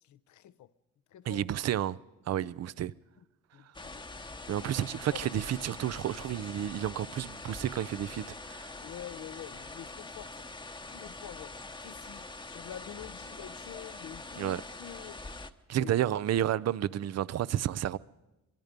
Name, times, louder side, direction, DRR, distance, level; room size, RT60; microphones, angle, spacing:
voice 1, 0.1-0.7 1.1-1.4 3.5-4.2 4.6-4.7 5.1-5.3 8.8-10.4 10.9-11.5 11.8-15.2 15.8-15.9, left 11 dB, 75° left, 0.9 m, -47 dB
voice 2, 1.2-2.0 2.3-2.9 4.5-8.7 14.4-14.6 15.7-18.0, right 11 dB, 55° right, 0.6 m, -31 dB
sound 1, 3.7-15.5, left 3 dB, 15° left, 1.0 m, -44 dB
24.0 x 23.0 x 5.3 m
cardioid pair, 90°, 30 cm